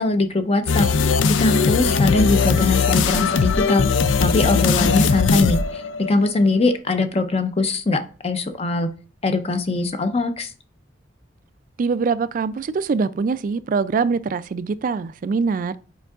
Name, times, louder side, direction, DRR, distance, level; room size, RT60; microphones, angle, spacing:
voice 1, 0.0-3.9 4.2-8.9 9.2-10.5, left 3 dB, 30° left, 0.6 m, -22 dB
sound 1, 0.7-6.4, left 5 dB, 85° left, 0.4 m, -19 dB
voice 2, 11.8-15.8, right 5 dB, 45° right, 0.3 m, -23 dB
9.1 x 4.5 x 2.4 m
head